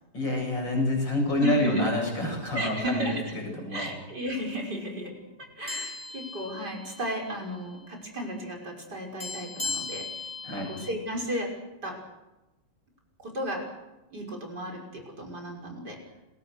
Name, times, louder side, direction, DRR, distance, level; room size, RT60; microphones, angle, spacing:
voice 1, 0.1-3.9 10.4-10.7, left 1 dB, 75° left, 1 dB, 8.9 m, -27 dB
voice 2, 1.4-1.9 2.5-3.4 3.7-5.1 5.6-10.0 10.7-11.5 11.8-12.0 13.2-13.6 14.1-16.0, equal, 60° right, 0 dB, 6.4 m, -34 dB
sound 1, 5.7-7.3 7.6-7.8 9.2-10.9, left 4 dB, 30° left, 4.5 m, -37 dB
29.5 x 22.0 x 6.5 m, 1.0 s
omnidirectional pair, 2.0 m